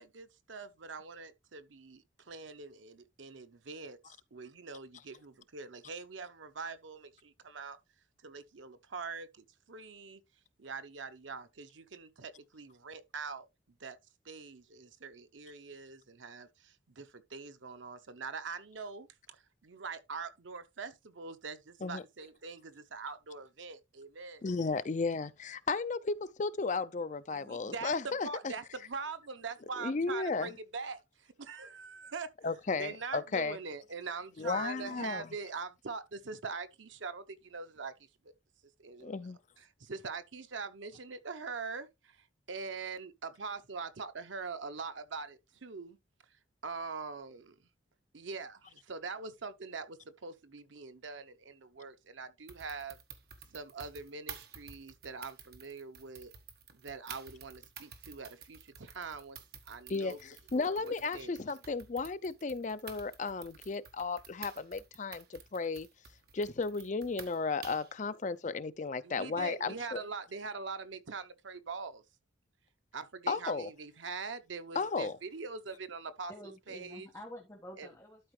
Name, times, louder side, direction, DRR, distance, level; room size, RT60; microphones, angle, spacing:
voice 1, 0.0-7.8 8.2-10.2 10.6-13.5 13.8-14.0 14.2-24.4 27.3-32.3 32.8-37.9 38.8-39.2 39.6-46.0 46.6-47.5 48.1-53.0 53.5-56.3 56.7-60.2 60.5-61.4 69.0-72.0 72.9-77.1 77.8-77.9, right 4 dB, 80° right, 0.8 m, -43 dB
voice 2, 24.4-28.5 29.8-30.5 32.4-33.6 34.4-35.3 39.0-39.4 59.9-65.9 66.3-70.0 73.3-73.7 74.7-75.2, left 4 dB, 40° left, 0.4 m, -34 dB
sound 1, 52.5-68.0, right 7 dB, 55° right, 1.3 m, -51 dB
voice 3, 76.3-78.3, equal, 15° left, 1.4 m, -49 dB
12.0 x 4.5 x 3.2 m
head